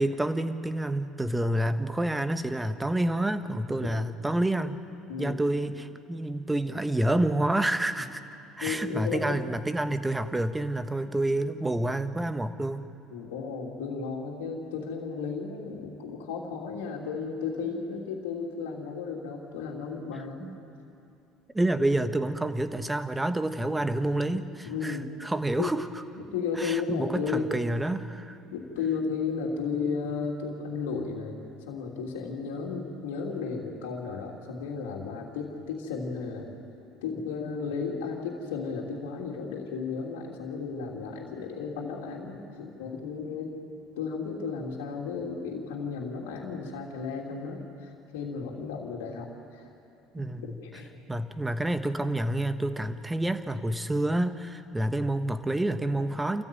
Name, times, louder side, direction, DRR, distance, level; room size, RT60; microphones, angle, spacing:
voice 1, 0.0-4.8 5.2-8.2 8.6-12.8 20.4-20.6 21.5-25.9 26.6-28.4 50.1-50.6 51.1-56.4, right 1 dB, 10° right, 9 dB, 1.4 m, -28 dB
voice 2, 1.4-1.7 5.1-5.4 8.6-9.4 13.1-20.5 24.6-25.1 25.6-25.7 26.3-27.5 28.5-31.4 31.7-36.5 37.0-43.6 44.0-49.7 50.6-50.9, left 5 dB, 85° left, -2 dB, 3.1 m, -34 dB
29.0 x 14.5 x 9.3 m, 2.7 s
supercardioid pair, 80°, 0 cm